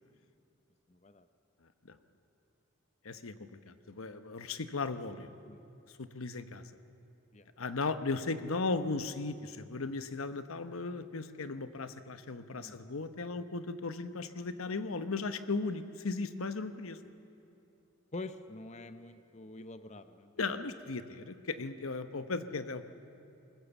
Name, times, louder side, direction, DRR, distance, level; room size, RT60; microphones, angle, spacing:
voice 1, 0.9-1.3 5.4-5.6 7.3-7.5 12.6-12.8 18.1-20.3, left 2 dB, 35° left, 11 dB, 0.7 m, -46 dB
voice 2, 3.0-5.3 6.0-6.7 7.6-17.0 20.4-22.8, left 3 dB, 90° left, 11 dB, 1.0 m, -36 dB
21.0 x 20.0 x 7.2 m, 2.7 s
head